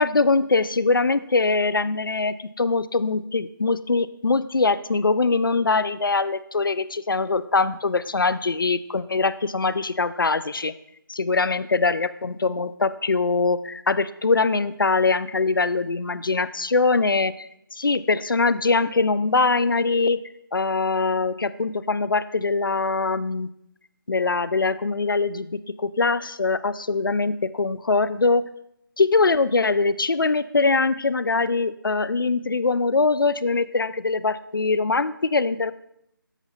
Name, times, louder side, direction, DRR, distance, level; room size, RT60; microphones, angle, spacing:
voice 1, 0.0-10.7 11.1-20.2 20.5-23.5 24.1-28.4 29.0-35.7, left 3 dB, 70° left, 15 dB, 0.4 m, -22 dB
14.0 x 5.5 x 2.3 m, 0.75 s
figure-of-eight pair, 160°, 12 cm